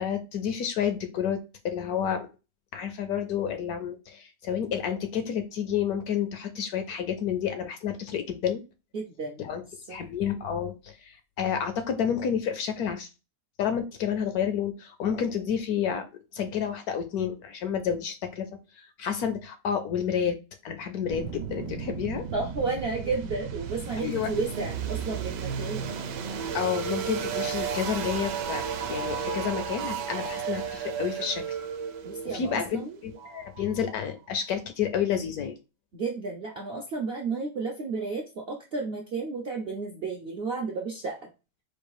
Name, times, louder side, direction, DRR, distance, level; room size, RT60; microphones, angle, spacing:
voice 1, 0.0-2.3 2.7-8.6 9.4-9.6 9.9-13.1 13.6-16.1 16.3-18.5 18.8-20.4 20.6-22.2 24.0-24.3 26.5-28.6 28.9-31.4 32.3-35.6, left 8 dB, 65° left, 8 dB, 1.0 m, -30 dB
voice 2, 8.9-9.5 9.9-10.0 22.3-26.0 32.0-33.0 35.9-41.3, right 4 dB, 60° right, 0 dB, 0.6 m, -32 dB
sound 1, 21.1-33.9, right 7 dB, 75° right, 1.3 m, -33 dB
4.5 x 2.3 x 4.7 m, 0.29 s
omnidirectional pair, 1.9 m